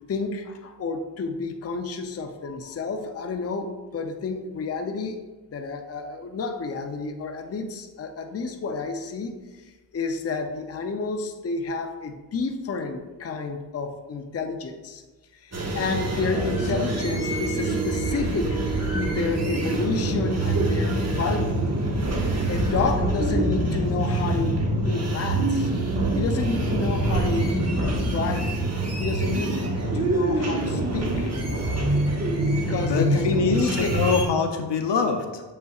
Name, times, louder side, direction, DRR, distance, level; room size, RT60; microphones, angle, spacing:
voice 1, 0.0-5.2 5.5-9.3 9.6-15.0 15.4-18.6 18.9-21.6 22.5-25.7 26.1-27.5 28.1-28.5 29.0-29.6 29.9-31.3 32.5-33.9, left 4 dB, 35° left, 5 dB, 0.6 m, -30 dB
sound 1, 15.5-34.2, right 1 dB, 35° right, 1.3 m, -25 dB
voice 2, 16.2-16.6 32.9-35.4, left 5 dB, 75° left, 5 dB, 0.7 m, -25 dB
7.4 x 5.6 x 2.4 m, 1.2 s
cardioid pair, 80°, 43 cm